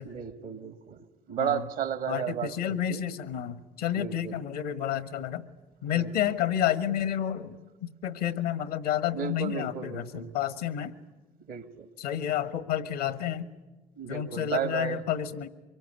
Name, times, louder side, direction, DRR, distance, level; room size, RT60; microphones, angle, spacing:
voice 1, 0.0-3.1 3.9-4.3 5.9-6.1 9.1-10.3 11.5-11.9 14.0-15.0, right 9 dB, 80° right, 11 dB, 1.8 m, -34 dB
voice 2, 2.1-5.5 5.8-10.9 12.0-13.5 14.1-15.5, left 10 dB, 85° left, 14 dB, 1.3 m, -30 dB
24.5 x 22.5 x 8.4 m, 1.2 s
hypercardioid pair, 50°, 20 cm